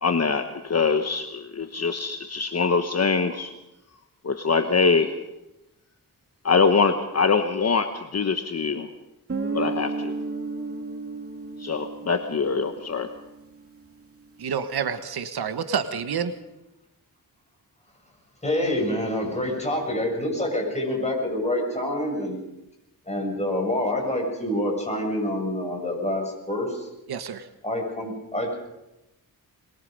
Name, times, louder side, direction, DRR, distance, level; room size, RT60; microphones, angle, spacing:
voice 1, 0.0-3.5 4.2-5.1 6.4-8.9 9.5-10.1 11.6-13.1, left 5 dB, 45° left, 7 dB, 1.2 m, -23 dB
Guitar, 9.3-13.9, right 3 dB, 40° right, 2.8 m, -33 dB
voice 2, 14.4-16.3 27.1-27.5, right 7 dB, 85° right, 10 dB, 1.3 m, -28 dB
voice 3, 18.4-22.4 23.1-26.9 27.6-28.5, left 1 dB, 20° left, 1 dB, 7.5 m, -27 dB
22.5 x 22.0 x 5.4 m, 0.95 s
wide cardioid pair, 95°, 37 cm